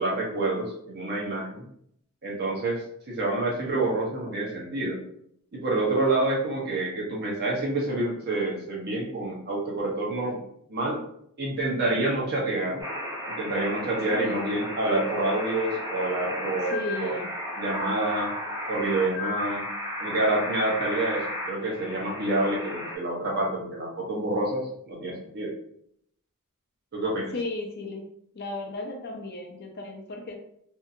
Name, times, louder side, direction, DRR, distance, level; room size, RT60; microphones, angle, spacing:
voice 1, 0.0-1.7 2.2-5.0 5.5-10.4 10.7-11.0 11.4-12.8 13.3-17.2 17.6-18.4 18.7-19.6 20.0-25.5 26.9-27.3, right 2 dB, 45° right, -3 dB, 0.8 m, -28 dB
sound 1, 12.8-23.0, left 1 dB, 15° right, 0.5 m, -34 dB
voice 2, 14.1-14.5 16.7-17.3 27.3-28.1 28.3-30.4, left 2 dB, 45° left, 2 dB, 0.5 m, -34 dB
2.7 x 2.5 x 2.5 m, 0.70 s
head